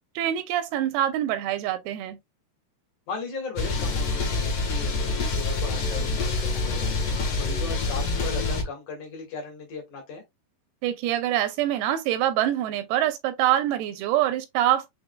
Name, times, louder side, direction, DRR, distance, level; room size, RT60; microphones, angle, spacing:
voice 1, 0.2-2.2 10.8-15.0, right 12 dB, 85° right, 2.5 m, -25 dB
voice 2, 3.1-6.9 7.3-10.2, left 4 dB, 55° left, 2.6 m, -37 dB
sound 1, 3.6-8.6, left 3 dB, 80° left, 1.2 m, -26 dB
6.0 x 3.5 x 2.2 m
omnidirectional pair, 4.7 m